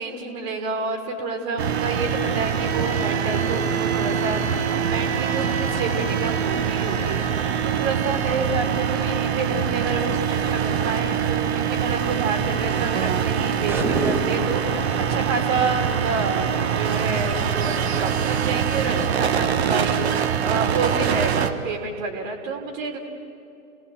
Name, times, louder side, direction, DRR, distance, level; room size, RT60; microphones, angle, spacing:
voice 1, 0.0-23.0, right 3 dB, 30° right, 3 dB, 3.2 m, -29 dB
sound 1, 1.6-21.5, right 8 dB, 50° right, 1.5 m, -24 dB
sound 2, 13.7-14.7, right 3 dB, 5° right, 0.9 m, -26 dB
30.0 x 19.0 x 7.9 m, 2.6 s
figure-of-eight pair, 115°, 42 cm